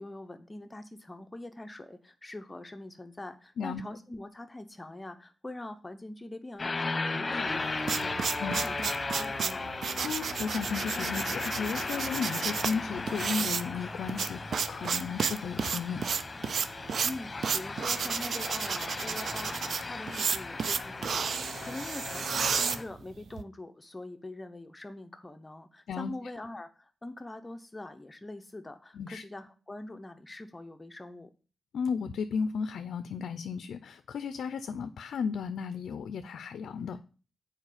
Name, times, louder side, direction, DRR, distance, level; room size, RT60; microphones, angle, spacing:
voice 1, 0.0-9.7 17.0-31.3, left 2 dB, 25° left, 7 dB, 0.7 m, -43 dB
sound 1, 6.6-22.8, left 3 dB, 40° left, 1.1 m, -36 dB
sound 2, 7.5-23.4, right 6 dB, 75° right, 0.4 m, -32 dB
voice 2, 10.0-16.0 25.9-26.1 28.9-29.2 31.7-37.0, left 6 dB, 90° left, 11 dB, 0.4 m, -34 dB
7.2 x 4.6 x 4.9 m, 0.37 s
cardioid pair, 65°, 0 cm